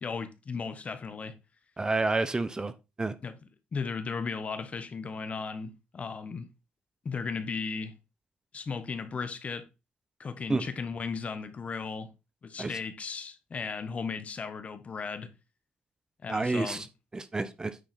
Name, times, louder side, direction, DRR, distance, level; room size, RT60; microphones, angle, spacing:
voice 1, 0.0-1.4 3.2-3.3 3.7-6.5 7.0-7.9 8.5-9.7 10.2-12.1 12.4-15.3 16.2-16.8, left 5 dB, 40° left, 1.3 m, -36 dB
voice 2, 1.8-2.7 3.0-3.1 10.5-10.6 12.6-12.7 16.3-16.8 17.1-17.7, right 3 dB, 20° right, 0.8 m, -29 dB
9.4 x 4.2 x 4.2 m
supercardioid pair, 75°, 3 cm